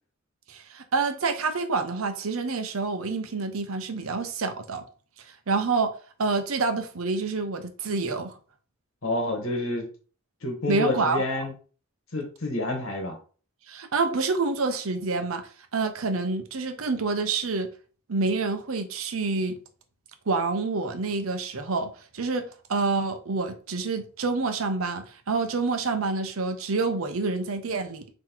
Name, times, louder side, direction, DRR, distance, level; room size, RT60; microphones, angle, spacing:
voice 1, 0.5-4.8 5.5-5.9 6.2-8.3 10.7-11.2 13.7-17.7 18.1-19.6 20.3-28.1, right 3 dB, 75° right, 0.8 m, -27 dB
voice 2, 9.0-9.9 10.4-11.5 12.1-13.2, left 2 dB, 70° left, 1.2 m, -28 dB
3.8 x 3.0 x 4.4 m
head